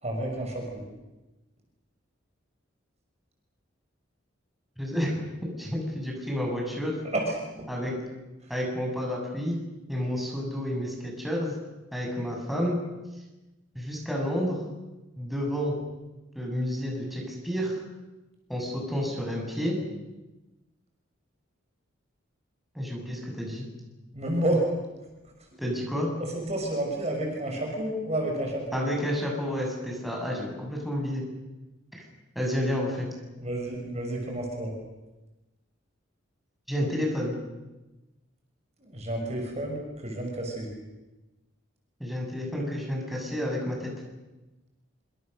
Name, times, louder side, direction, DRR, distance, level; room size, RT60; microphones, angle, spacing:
voice 1, 0.0-0.8 7.1-7.2 24.1-24.6 26.3-28.8 33.4-34.7 38.8-39.8 40.0-40.7, right 1 dB, 35° right, 1 dB, 5.8 m, -30 dB
voice 2, 4.8-5.3 5.6-7.0 7.7-7.9 8.5-9.6 9.9-11.5 11.9-12.8 13.8-14.6 15.2-15.8 16.4-17.8 18.5-19.8 22.7-23.7 25.6-26.1 28.7-31.2 31.9-32.0 32.4-33.1 36.7-37.4 42.0-43.9, equal, ahead, -2 dB, 7.1 m, -30 dB
26.5 x 26.0 x 6.7 m, 1.1 s
head